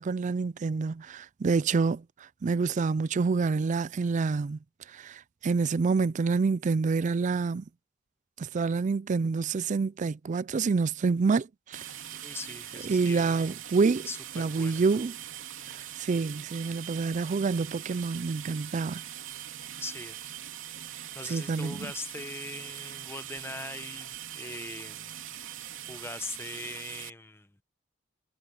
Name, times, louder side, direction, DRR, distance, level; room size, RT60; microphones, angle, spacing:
voice 1, 0.0-2.0 2.4-4.6 4.9-7.6 8.4-11.8 12.8-14.1 14.4-15.2 15.7-19.0 21.3-21.9, right 4 dB, 40° right, 0.4 m, -27 dB
sound 1, 11.7-27.1, right 11 dB, 90° right, 3.2 m, -42 dB
voice 2, 12.1-13.6 14.1-14.8 19.7-20.4 21.1-25.1 25.4-27.6, left 3 dB, 15° left, 1.1 m, -41 dB
head